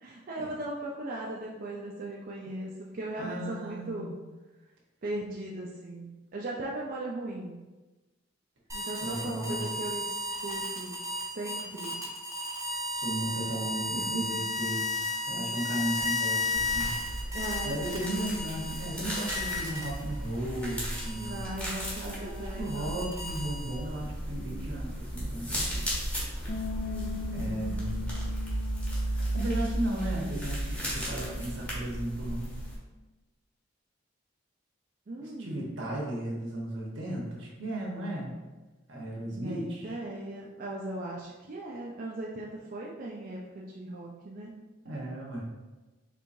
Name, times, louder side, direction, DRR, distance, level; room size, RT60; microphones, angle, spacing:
voice 1, 0.0-4.1 5.0-7.6 8.7-10.9 11.4-12.0 13.9-14.5 17.3-18.2 21.2-23.1 26.8-27.8 35.1-35.6 39.3-44.5, right 1 dB, 50° right, -3 dB, 0.5 m, -38 dB
voice 2, 3.2-4.1 8.9-9.7 12.9-14.9 15.3-16.9 17.6-21.4 22.0-25.9 27.3-28.1 29.1-32.5 35.2-38.4 38.9-40.0 44.8-45.4, right 1 dB, 80° right, -3 dB, 1.1 m, -35 dB
sound 1, 8.7-20.2 20.6-24.0, left 2 dB, 15° right, 0.8 m, -34 dB
sound 2, 16.5-32.8, right 1 dB, 5° left, 1.1 m, -35 dB
Bass guitar, 26.5-32.7, left 6 dB, 60° left, 0.6 m, -43 dB
4.6 x 3.3 x 2.6 m, 1.2 s
head